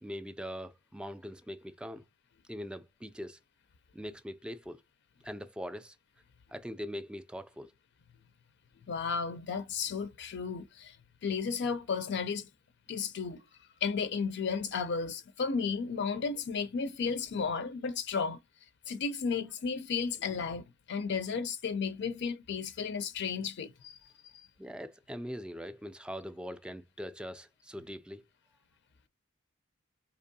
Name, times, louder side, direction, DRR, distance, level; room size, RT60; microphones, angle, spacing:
voice 1, 0.0-2.0 2.5-3.4 3.9-4.8 5.2-6.0 6.5-7.7 24.6-28.2, equal, 5° right, 0.3 m, -42 dB
voice 2, 8.9-11.0 11.2-12.5 12.9-13.4 13.8-18.4 18.9-24.5, left 5 dB, 60° left, 0.4 m, -33 dB
4.4 x 2.9 x 2.6 m
head